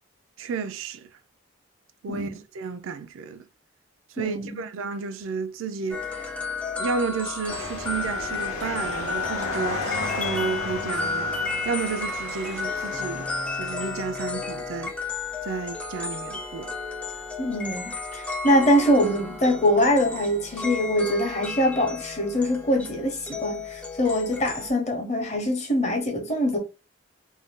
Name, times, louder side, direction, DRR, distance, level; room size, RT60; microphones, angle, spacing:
voice 1, 0.4-1.1 2.0-3.4 4.2-6.3 6.8-9.8 10.2-13.3 13.6-14.9 15.4-16.7, right 5 dB, 70° right, 0.3 m, -32 dB
voice 2, 2.1-2.4 4.2-4.6 17.4-26.6, equal, 30° left, 0.8 m, -23 dB
sound 1, 5.9-24.7, left 4 dB, 5° left, 0.3 m, -33 dB
sound 2, 7.5-14.1, left 2 dB, 90° left, 0.8 m, -34 dB
2.5 x 2.2 x 3.5 m
head